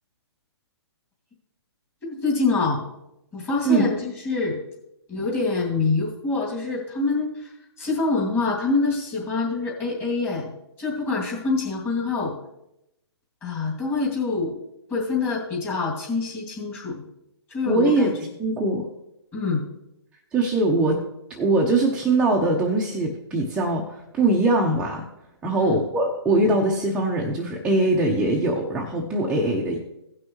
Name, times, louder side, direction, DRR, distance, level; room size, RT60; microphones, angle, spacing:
voice 1, 2.0-2.8 3.3-4.6 5.1-10.5 10.8-12.3 13.4-14.6 14.9-17.0 17.5-18.1 19.3-19.6 25.5-25.8, left 3 dB, 15° left, -4 dB, 2.5 m, -25 dB
voice 2, 17.7-18.1 18.4-18.8 20.3-21.0 21.3-25.0 25.4-29.8, right 2 dB, 5° right, -3 dB, 0.8 m, -22 dB
17.0 x 6.1 x 3.1 m, 0.87 s
hypercardioid pair, 150°, 15 cm